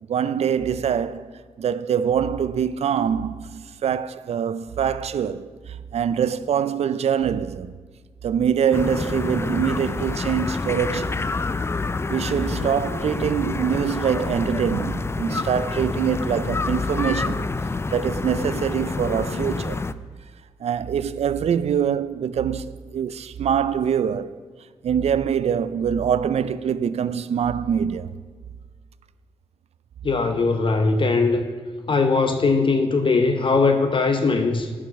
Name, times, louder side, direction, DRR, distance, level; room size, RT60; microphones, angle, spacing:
voice 1, 0.1-1.3 1.6-5.5 5.9-7.7 8.2-11.2 12.1-17.4 17.9-19.8 20.6-24.3 24.8-28.1, right 8 dB, 60° right, 0.4 m, -24 dB
sound 1, 8.7-19.9, left 3 dB, 20° left, 0.3 m, -27 dB
voice 2, 30.0-31.4 31.9-34.7, left 3 dB, 45° left, 0.7 m, -20 dB
10.5 x 5.0 x 5.7 m
cardioid pair, 55°, 12 cm